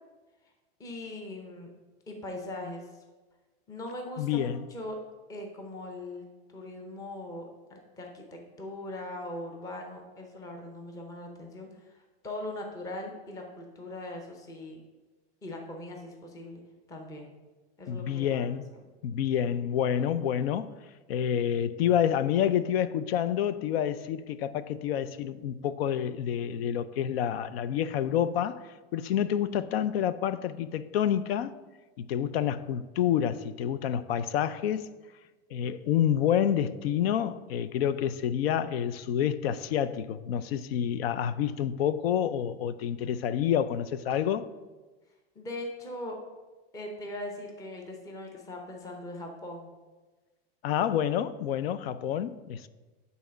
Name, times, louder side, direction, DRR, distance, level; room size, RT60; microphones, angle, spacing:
voice 1, 0.8-1.7 2.1-3.0 3.7-5.0 5.3-6.2 6.5-14.8 15.4-16.6 16.9-17.4 17.8-18.5 45.3-46.2 46.7-49.7, left 1 dB, 10° left, 0.7 m, -40 dB
voice 2, 4.2-4.6 17.9-18.7 19.0-20.7 21.1-31.5 32.0-34.9 35.5-44.5 50.6-52.7, left 9 dB, 75° left, 0.5 m, -28 dB
8.1 x 4.1 x 6.3 m
supercardioid pair, 165°, 31 cm